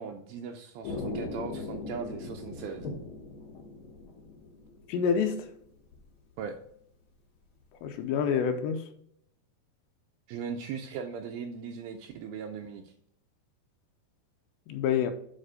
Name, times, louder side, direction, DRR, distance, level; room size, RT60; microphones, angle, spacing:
voice 1, 0.0-2.9 6.4-6.6 10.3-12.9, right 6 dB, 85° right, 2.1 m, -38 dB
sound 1, 0.8-5.4 5.6-6.1, left 3 dB, 55° left, 1.4 m, -39 dB
voice 2, 4.9-5.5 7.8-8.8 14.7-15.1, left 7 dB, 90° left, 2.9 m, -27 dB
9.1 x 4.3 x 4.9 m
omnidirectional pair, 5.1 m